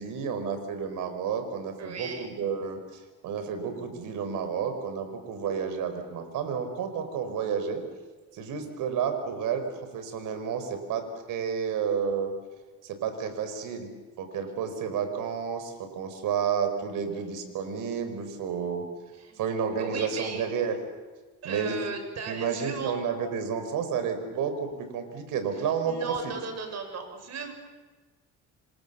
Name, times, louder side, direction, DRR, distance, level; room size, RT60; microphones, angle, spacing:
voice 1, 0.0-7.8 8.3-12.3 12.8-13.9 14.2-18.9 19.4-20.8 21.4-21.8 22.3-26.0, right 6 dB, 75° right, 8 dB, 5.1 m, -31 dB
voice 2, 1.8-2.3 19.2-20.4 21.4-22.9 25.8-27.5, right 5 dB, 55° right, 6 dB, 6.4 m, -36 dB
28.0 x 26.0 x 7.0 m, 1.3 s
cardioid pair, 110°, 32 cm